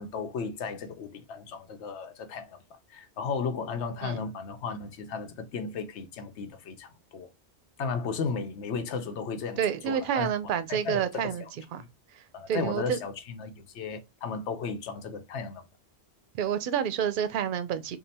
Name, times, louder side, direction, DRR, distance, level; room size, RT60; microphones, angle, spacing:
voice 1, 0.0-2.6 2.9-7.3 7.8-9.6 9.9-10.3 10.7-11.3 11.8-11.9 12.3-15.6, left 5 dB, 90° left, 1.0 m, -35 dB
voice 2, 9.6-11.4 11.7-11.8 12.2-13.0 16.3-18.0, right 8 dB, 60° right, 0.6 m, -29 dB
3.7 x 2.2 x 4.1 m
omnidirectional pair, 1.1 m